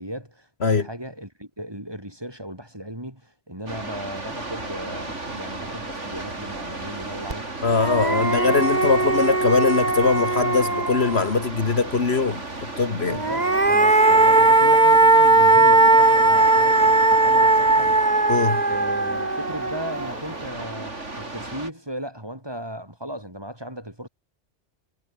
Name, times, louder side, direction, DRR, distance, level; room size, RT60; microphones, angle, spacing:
voice 1, 0.0-9.1 13.1-18.0 18.6-24.1, equal, 20° right, 7.9 m, -36 dB
sound 1, 3.7-21.7, right 2 dB, 80° right, 4.8 m, -35 dB
sound 2, 7.3-7.4 7.7-11.4 13.1-20.3, right 2 dB, 35° right, 2.5 m, -18 dB
voice 2, 7.6-12.4 12.8-13.2 18.3-18.6, left 4 dB, 60° left, 1.9 m, -21 dB
omnidirectional pair, 1.2 m